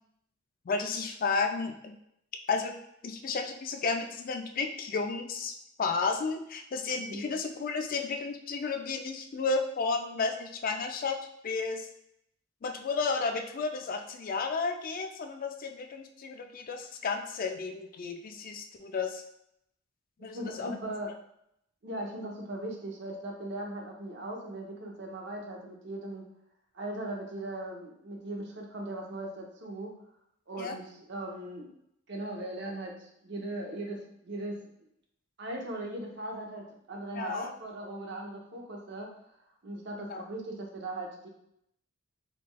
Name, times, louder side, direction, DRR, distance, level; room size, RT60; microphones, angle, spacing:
voice 1, 0.7-1.9 2.5-2.8 3.0-5.5 5.8-11.2 11.4-11.9 12.6-19.2 20.2-20.8 30.6-30.8 37.2-37.5 40.0-40.2, left 4 dB, 45° left, 5 dB, 0.4 m, -32 dB
voice 2, 20.2-21.1 21.8-26.2 26.7-29.9 30.5-31.7 32.1-34.6 35.4-39.1 39.6-41.3, right 1 dB, 60° right, 0 dB, 0.8 m, -39 dB
4.2 x 3.0 x 2.2 m, 0.75 s
head